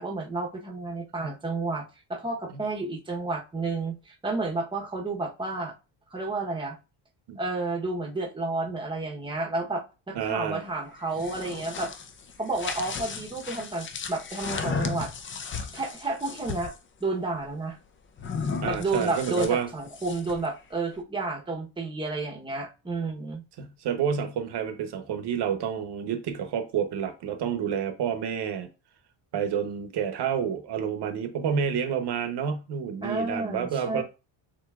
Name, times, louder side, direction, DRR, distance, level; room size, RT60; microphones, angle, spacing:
voice 1, 0.0-1.8 2.1-5.7 6.1-6.8 7.4-11.9 12.4-15.1 15.7-16.7 17.0-17.8 18.6-23.4 33.0-34.0, right 3 dB, 10° right, 0.9 m, -31 dB
voice 2, 10.1-10.6 18.6-19.7 23.6-28.7 29.3-34.0, right 7 dB, 60° right, 1.0 m, -29 dB
sound 1, 11.0-16.8 18.2-20.5, left 5 dB, 25° left, 0.5 m, -35 dB
6.8 x 2.9 x 2.4 m
cardioid pair, 125°, 46 cm